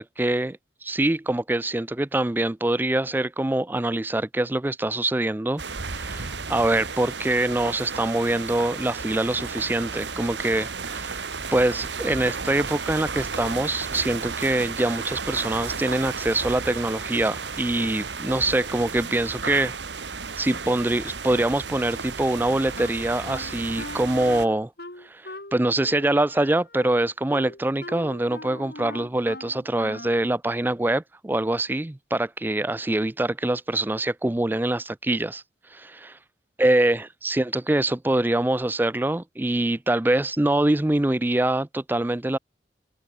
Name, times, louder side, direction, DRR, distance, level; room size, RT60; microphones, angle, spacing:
voice 1, 0.0-5.6 5.9-11.2 11.5-19.7 20.4-24.7 25.0-35.4 35.7-36.2 36.6-42.4, right 1 dB, 10° right, 0.4 m, -24 dB
sound 1, 5.6-24.5, right 5 dB, 85° right, 2.1 m, -33 dB
Wind instrument woodwind instrument, 22.8-30.3, left 1 dB, 60° left, 6.3 m, -40 dB
open air
head